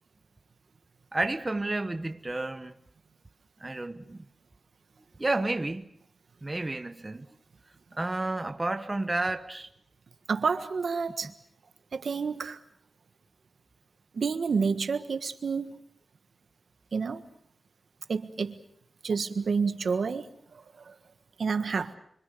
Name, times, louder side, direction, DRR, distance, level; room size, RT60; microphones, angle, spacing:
voice 1, 1.1-2.7 3.6-4.2 5.2-5.9 6.4-7.3 8.0-9.7 11.2-11.3, right 2 dB, 25° right, 1.0 m, -31 dB
voice 2, 10.3-11.3 11.9-12.6 14.1-15.8 16.9-17.2 18.1-18.6 19.0-20.9 21.4-22.0, right 5 dB, 80° right, 1.5 m, -29 dB
26.0 x 25.0 x 6.8 m
wide cardioid pair, 135°, 0 cm